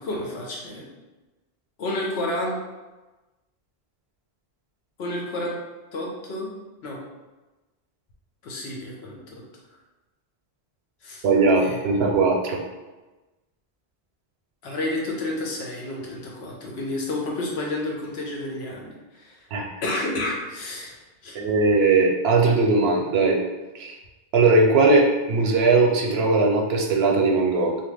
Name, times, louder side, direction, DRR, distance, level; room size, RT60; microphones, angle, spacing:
voice 1, 0.0-0.8 1.8-2.6 5.0-5.6 5.9-6.5 6.8-7.0 8.4-9.4 11.0-11.2 11.6-11.8 14.6-19.4 19.8-21.0 21.2-21.4, left 1 dB, 90° left, -2 dB, 1.0 m, -30 dB
voice 2, 11.2-12.6 19.5-19.7 21.3-23.4 23.7-24.0 24.3-27.8, right 3 dB, 80° right, 1 dB, 0.8 m, -19 dB
2.9 x 2.3 x 3.3 m, 1.1 s
omnidirectional pair, 1.0 m